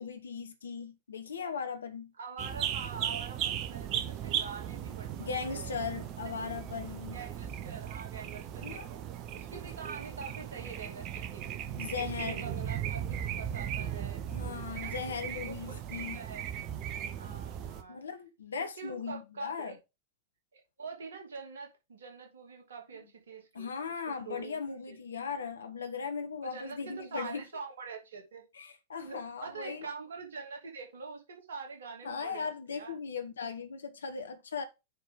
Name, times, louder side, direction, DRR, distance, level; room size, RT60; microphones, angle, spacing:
voice 1, 0.0-2.1 5.2-7.2 8.6-8.9 11.8-12.5 14.3-16.2 17.9-19.7 23.5-27.4 28.5-29.9 32.0-34.6, left 5 dB, 70° left, 1.2 m, -38 dB
voice 2, 2.2-5.7 7.0-9.0 9.3-11.6 12.0-13.0 13.4-14.2 14.7-15.0 15.3-16.5 17.2-18.0 18.5-19.7 20.5-23.7 24.1-24.6 24.9-25.0 25.4-25.5 26.4-28.4 29.0-32.9, right 5 dB, 65° right, 2.8 m, -45 dB
sound 1, 2.4-17.8, right 10 dB, 40° right, 1.1 m, -37 dB
9.5 x 4.9 x 3.8 m
figure-of-eight pair, 90°, 0 cm